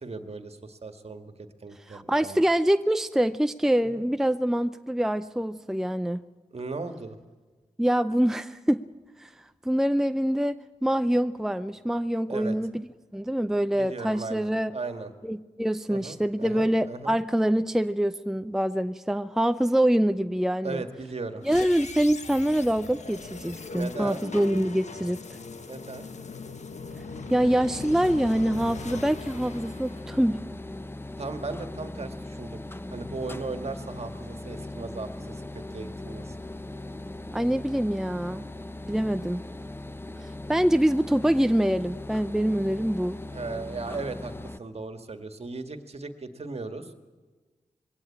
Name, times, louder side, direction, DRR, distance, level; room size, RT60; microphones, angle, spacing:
voice 1, 0.0-2.4 3.8-4.1 6.5-7.2 12.3-12.6 13.8-15.1 15.9-17.2 20.6-21.5 23.7-24.2 25.6-26.1 31.2-32.6 32.9-35.4 35.7-36.4 43.3-46.9, right 3 dB, 50° right, 7 dB, 1.9 m, -37 dB
voice 2, 1.9-6.2 7.8-8.8 9.2-9.3 9.6-12.9 13.1-14.7 15.2-20.8 21.4-25.2 27.3-30.4 37.3-38.5 38.9-39.4 40.5-43.2, equal, 5° right, 11 dB, 0.6 m, -25 dB
sound 1, 21.4-30.6, left 4 dB, 65° left, 1.4 m, -40 dB
sound 2, 26.9-44.6, left 2 dB, 15° left, 0.9 m, -39 dB
21.0 x 17.0 x 8.7 m, 1.3 s
cardioid pair, 45°, 13 cm